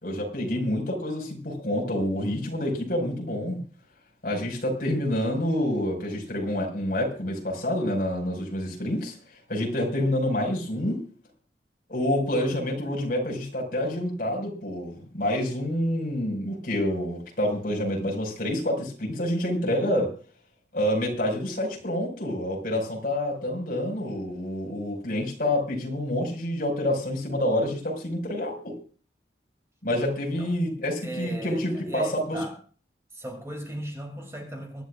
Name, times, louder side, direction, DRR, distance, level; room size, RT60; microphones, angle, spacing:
voice 1, 0.0-3.6 4.2-9.2 9.5-11.0 11.9-20.1 20.7-28.8 29.8-32.4, left 1 dB, 50° left, 5.4 m, -27 dB
voice 2, 31.0-32.6 33.1-34.9, right 1 dB, 15° right, 3.0 m, -36 dB
24.0 x 12.5 x 2.5 m
head